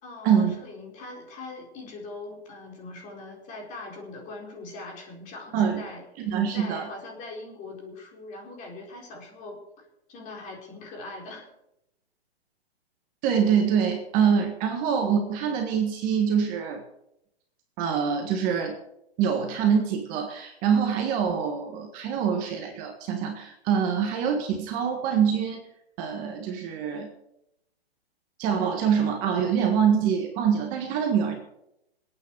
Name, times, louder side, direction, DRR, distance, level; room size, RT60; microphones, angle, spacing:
voice 1, 0.0-6.0 6.5-9.6 10.1-11.5, left 2 dB, 25° left, 0 dB, 4.3 m, -41 dB
voice 2, 6.2-6.9 13.2-16.8 17.8-18.8 19.2-25.7 26.0-27.1 28.4-31.4, right 7 dB, 25° right, 3 dB, 1.6 m, -25 dB
27.0 x 9.2 x 4.7 m, 0.81 s
hypercardioid pair, 150°, 31 cm